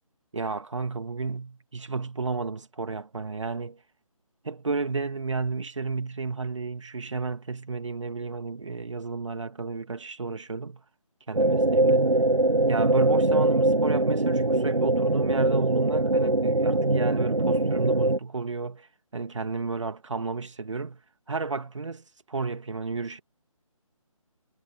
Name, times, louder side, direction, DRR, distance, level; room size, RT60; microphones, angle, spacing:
voice 1, 0.3-3.8 4.4-10.8 11.3-12.0 12.7-18.9 19.1-21.0 21.3-23.2, right 4 dB, 55° right, 2.1 m, -32 dB
sound 1, 11.3-18.2, right 2 dB, 80° right, 1.1 m, -22 dB
figure-of-eight pair, 150°, 18 cm